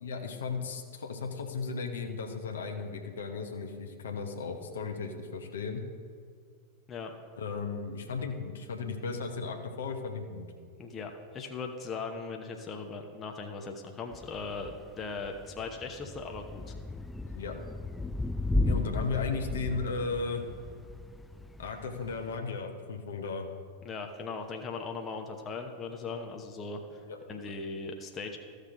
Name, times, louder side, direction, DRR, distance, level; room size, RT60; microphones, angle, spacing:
voice 1, 0.0-5.8 7.4-10.4 17.3-17.5 18.6-20.4 21.6-23.5 27.1-27.2, left 4 dB, 65° left, 3 dB, 1.1 m, -35 dB
voice 2, 10.8-16.7 23.8-27.0 27.3-28.4, left 4 dB, 25° left, 3 dB, 0.9 m, -39 dB
Thunder / Rain, 14.1-22.4, left 2 dB, 5° left, 0.3 m, -35 dB
14.5 x 6.5 x 3.8 m, 2.1 s
figure-of-eight pair, 90°, 0 cm